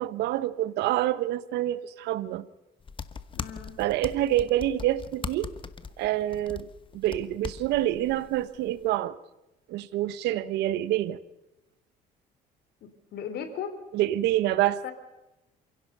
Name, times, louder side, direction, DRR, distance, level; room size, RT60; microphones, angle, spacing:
voice 1, 0.0-2.5 3.8-5.5 6.0-6.7 6.9-9.2 9.7-11.2 13.9-14.8, right 14 dB, 85° right, 1.1 m, -27 dB
sound 1, 2.8-8.9, left 5 dB, 30° left, 1.2 m, -40 dB
voice 2, 3.3-3.7 12.8-13.8 14.8-14.9, left 7 dB, 70° left, 3.4 m, -37 dB
28.0 x 16.5 x 6.7 m
cardioid pair, 110°, 17 cm